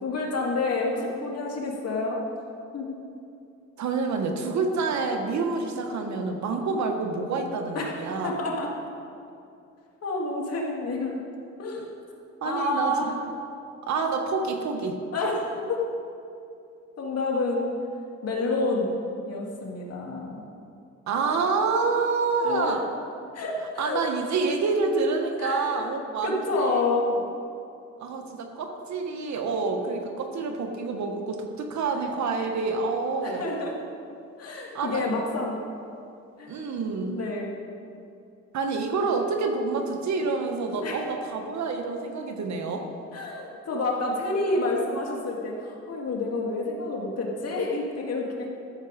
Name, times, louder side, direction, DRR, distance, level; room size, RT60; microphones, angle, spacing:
voice 1, 0.0-2.2 2.7-3.0 7.7-7.9 8.2-8.7 10.0-11.3 11.6-11.9 12.4-13.2 15.1-15.9 17.0-17.7 18.2-18.9 19.3-20.5 22.4-22.7 23.3-24.0 25.4-25.9 26.2-27.1 33.2-33.8 34.4-35.6 36.4-36.6 37.2-37.5 40.8-41.0 43.1-48.5, left 2 dB, 55° left, -1 dB, 2.2 m, -29 dB
voice 2, 3.8-8.3 12.4-13.1 13.9-15.0 21.1-22.9 23.8-26.8 28.0-33.5 34.7-35.0 36.5-37.2 38.5-42.9, right 4 dB, 65° right, 4 dB, 1.3 m, -27 dB
13.5 x 6.9 x 5.1 m, 2.6 s
cardioid pair, 90°, 30 cm